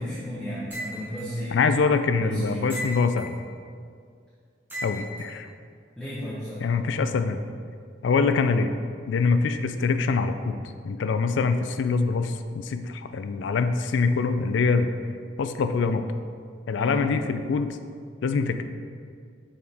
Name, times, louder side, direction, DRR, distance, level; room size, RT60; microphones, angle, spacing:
voice 1, 0.0-1.6 2.2-2.7 6.0-6.6 16.7-17.0, equal, 5° left, -11 dB, 1.1 m, -33 dB
sound 1, 0.7-1.3 2.7-3.4 4.7-5.3, equal, 10° right, 1.1 m, -36 dB
voice 2, 1.5-3.4 4.8-5.5 6.6-7.4 8.0-8.7 9.1-10.6 10.8-14.9 15.4-16.0 16.7-17.8 18.2-18.6, left 4 dB, 85° left, 9 dB, 0.4 m, -24 dB
6.5 x 4.2 x 3.5 m, 2.2 s
head